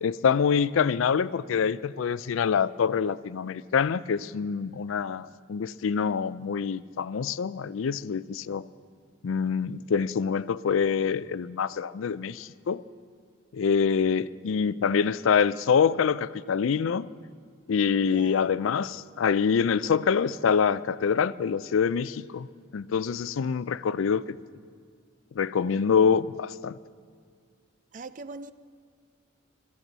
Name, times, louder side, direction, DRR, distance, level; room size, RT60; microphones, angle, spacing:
voice 1, 0.0-8.6 9.2-12.8 13.5-17.1 17.7-22.5 22.7-24.2 25.4-26.7, left 6 dB, 85° left, 0.4 m, -25 dB
voice 2, 17.9-18.5 27.9-28.5, right 3 dB, 40° right, 0.5 m, -41 dB
22.0 x 13.5 x 4.1 m
head